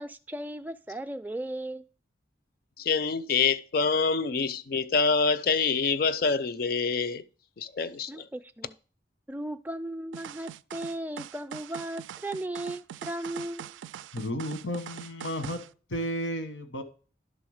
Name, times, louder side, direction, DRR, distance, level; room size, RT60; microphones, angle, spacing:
voice 1, 0.0-1.9 8.1-8.7 9.3-13.8, right 1 dB, 10° right, 0.3 m, -36 dB
voice 2, 2.8-7.2 7.6-8.2, left 5 dB, 50° left, 0.5 m, -26 dB
sound 1, 10.1-15.7, right 9 dB, 85° right, 0.3 m, -43 dB
voice 3, 14.1-15.6 15.9-16.8, equal, 85° left, 1.2 m, -33 dB
11.0 x 3.8 x 6.4 m
head